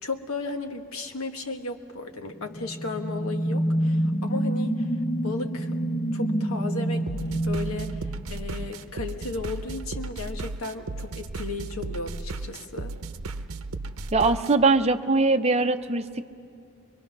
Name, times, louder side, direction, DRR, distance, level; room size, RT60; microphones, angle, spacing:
voice 1, 0.0-4.9 5.2-5.7 6.1-12.9, left 3 dB, 85° left, 4 dB, 1.5 m, -35 dB
sound 1, 2.3-8.8, right 1 dB, 40° left, 1.3 m, -27 dB
sound 2, 7.1-14.6, right 3 dB, 85° right, 0.8 m, -35 dB
voice 2, 14.1-16.3, right 3 dB, 30° right, 6 dB, 0.7 m, -22 dB
23.5 x 22.5 x 6.1 m, 2.4 s
head